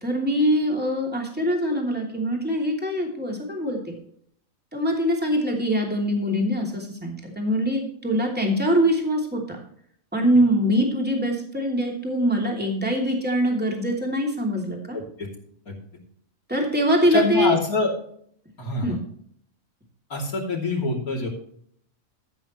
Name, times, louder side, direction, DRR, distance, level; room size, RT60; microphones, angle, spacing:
voice 1, 0.0-3.9 4.7-9.6 10.1-15.0 16.5-17.5 18.8-19.0, equal, 5° right, 0 dB, 2.8 m, -23 dB
voice 2, 14.9-15.3 15.7-15.8 17.1-17.9 18.6-19.0 20.1-21.3, left 3 dB, 85° left, -1 dB, 3.5 m, -25 dB
14.5 x 9.0 x 3.1 m, 0.64 s
omnidirectional pair, 1.5 m